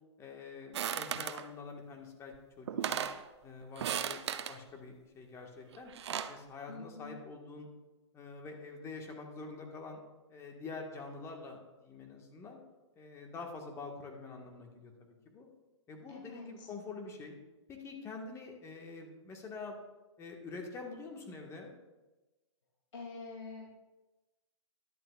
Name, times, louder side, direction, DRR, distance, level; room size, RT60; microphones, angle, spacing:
voice 1, 0.2-3.0 3.4-5.9 6.3-7.7 8.1-10.0 10.3-12.6 12.9-15.5 15.9-17.4 17.7-19.8 20.2-21.7, left 4 dB, 20° left, 1 dB, 1.6 m, -46 dB
sound 1, 0.7-1.4 2.3-2.4 2.7-3.2 3.8-4.6 5.7-6.4, right 9 dB, 65° right, 0.7 m, -36 dB
voice 2, 6.7-7.2 16.1-16.7 22.9-23.7, left 4 dB, 85° left, -4 dB, 2.8 m, -46 dB
13.5 x 11.0 x 2.5 m, 1.1 s
hypercardioid pair, 130°, 15 cm